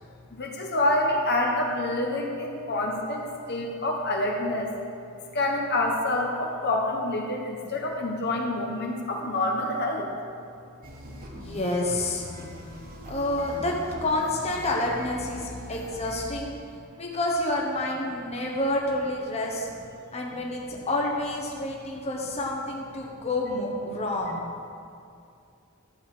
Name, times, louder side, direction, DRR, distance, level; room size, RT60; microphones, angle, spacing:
voice 1, 0.3-4.7 5.3-10.1, left 1 dB, 50° left, 0 dB, 1.2 m, -27 dB
sound 1, 10.8-16.3, equal, 40° right, 1.2 m, -41 dB
voice 2, 11.3-16.5 17.0-19.7 20.1-24.4, left 1 dB, 30° left, -2 dB, 1.2 m, -29 dB
12.5 x 8.0 x 5.0 m, 2.4 s
head